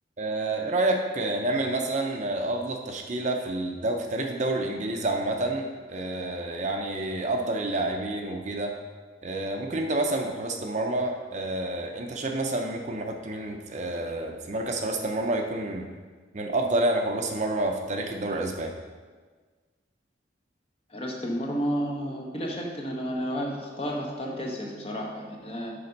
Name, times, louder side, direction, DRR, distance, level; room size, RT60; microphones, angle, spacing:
voice 1, 0.2-8.7 9.2-15.9 16.3-18.7, right 2 dB, 40° right, 3 dB, 0.6 m, -29 dB
voice 2, 20.9-25.7, equal, 30° left, 0 dB, 1.0 m, -31 dB
6.9 x 4.3 x 5.2 m, 1.4 s
head